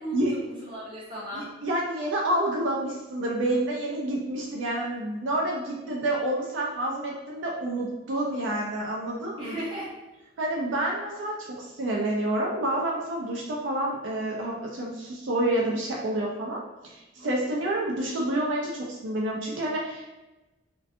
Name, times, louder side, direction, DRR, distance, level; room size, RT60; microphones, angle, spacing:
voice 1, 0.0-1.5 9.4-9.9, right 1 dB, 25° right, -10 dB, 1.2 m, -36 dB
voice 2, 1.3-9.5 10.4-20.0, right 1 dB, 80° right, -2 dB, 0.4 m, -28 dB
2.4 x 2.2 x 2.6 m, 1.1 s
head